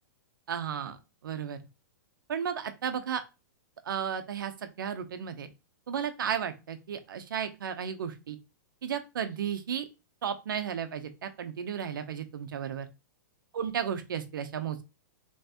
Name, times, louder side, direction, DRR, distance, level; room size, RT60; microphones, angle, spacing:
voice 1, 0.5-1.0 1.2-1.6 2.3-3.2 3.9-5.5 5.9-8.4 8.8-9.9 10.2-12.9 13.5-14.8, right 8 dB, 90° right, 9 dB, 0.8 m, -34 dB
5.5 x 3.2 x 2.9 m, 0.28 s
hypercardioid pair, 180°, 11 cm